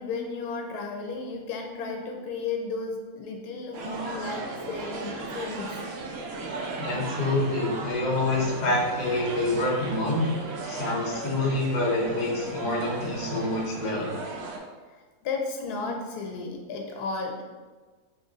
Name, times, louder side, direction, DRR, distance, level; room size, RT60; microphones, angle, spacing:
voice 1, 0.0-5.8 15.2-17.4, left 4 dB, 85° left, 2 dB, 1.2 m, -33 dB
sound 1, 3.7-14.6, right 3 dB, 80° right, 0.5 m, -36 dB
voice 2, 6.8-10.3 10.6-14.2, left 2 dB, 40° left, -3 dB, 0.7 m, -27 dB
3.0 x 2.9 x 3.8 m, 1.4 s
omnidirectional pair, 1.6 m